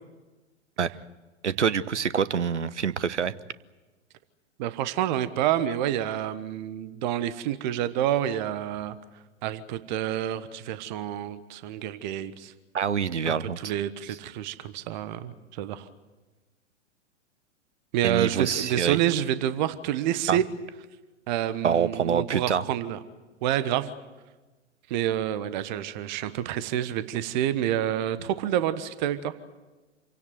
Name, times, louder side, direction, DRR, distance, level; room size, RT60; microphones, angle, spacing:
voice 1, 1.4-3.3 12.7-13.6 18.0-19.0 20.3-20.4 21.6-22.7, right 7 dB, 70° right, 17 dB, 1.1 m, -26 dB
voice 2, 4.6-8.9 9.4-12.5 13.3-15.8 17.9-20.4 21.3-23.0 23.4-23.9 24.9-29.3, right 11 dB, 40° right, 13 dB, 1.4 m, -28 dB
27.5 x 17.0 x 9.3 m, 1.2 s
figure-of-eight pair, 105°, 37 cm